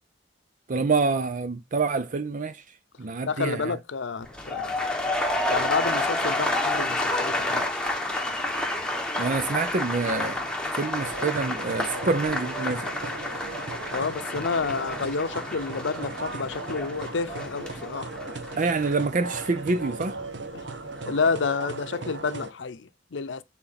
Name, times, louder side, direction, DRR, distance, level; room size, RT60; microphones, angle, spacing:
voice 1, 0.7-2.6 3.0-3.7 9.2-10.5 10.8-12.9 18.6-20.2, right 4 dB, 45° right, 0.5 m, -26 dB
voice 2, 3.2-5.1 5.5-7.8 13.9-18.1 20.5-20.6 21.0-23.4, left 4 dB, 85° left, 0.6 m, -30 dB
sound 1, 4.2-20.3 20.6-21.0, left 1 dB, 5° left, 1.5 m, -30 dB
sound 2, 11.0-22.5, right 3 dB, 75° right, 1.1 m, -37 dB
8.5 x 4.3 x 4.1 m
head